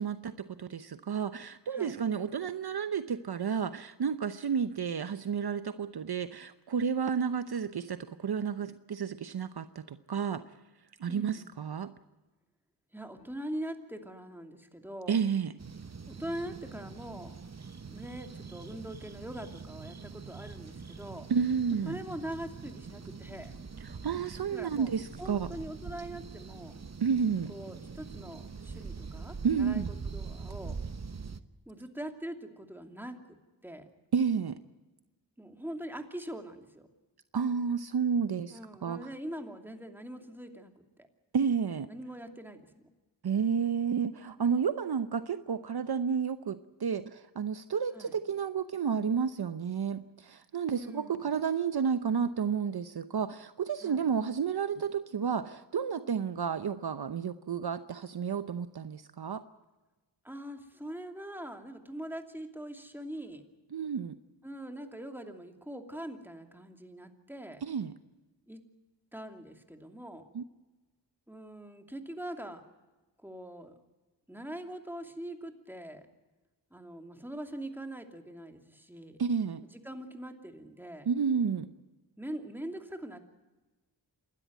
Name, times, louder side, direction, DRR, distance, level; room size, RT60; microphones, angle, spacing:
voice 1, 0.0-10.4 11.0-11.9 15.1-15.5 21.3-22.0 23.8-25.5 27.0-27.5 29.4-29.9 34.1-34.6 37.3-39.1 41.3-41.9 43.2-59.4 63.7-64.1 67.6-67.9 70.3-70.4 79.2-79.6 81.1-81.7, right 6 dB, 60° right, 12 dB, 0.9 m, -31 dB
voice 2, 11.1-11.5 12.9-15.2 16.1-17.3 17.9-21.3 21.8-23.5 24.5-24.9 25.2-26.8 27.5-30.8 31.7-33.2 33.6-33.9 35.4-36.9 38.5-40.7 41.9-42.7 47.9-48.1 50.7-51.4 53.8-54.0 60.2-63.4 64.4-67.6 68.5-68.6 69.1-70.3 71.3-72.6 73.2-73.8 74.3-76.1 76.7-79.2 79.7-81.1 82.2-83.2, right 1 dB, 5° right, 5 dB, 2.7 m, -42 dB
sound 1, 15.6-31.4, right 5 dB, 35° right, 1.1 m, -44 dB
28.0 x 12.5 x 9.3 m, 1.1 s
cardioid pair, 60°, 44 cm